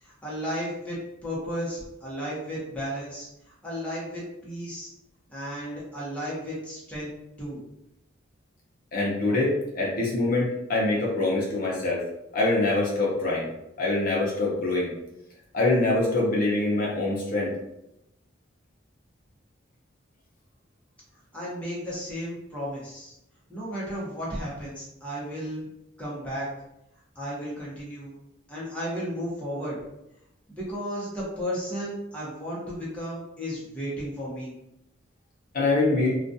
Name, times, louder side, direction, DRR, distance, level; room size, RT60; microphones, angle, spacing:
voice 1, 0.0-3.3 3.6-4.9 5.3-7.1 7.4-7.6 21.3-23.1 23.5-25.7 26.0-26.5 27.2-28.2 28.5-29.8 30.5-34.5, equal, 5° left, -7 dB, 0.8 m, -34 dB
voice 2, 8.9-12.0 12.3-13.5 13.8-14.9 15.5-17.5 35.5-36.2, left 2 dB, 50° left, -5 dB, 0.6 m, -24 dB
2.3 x 2.3 x 2.6 m, 0.85 s
head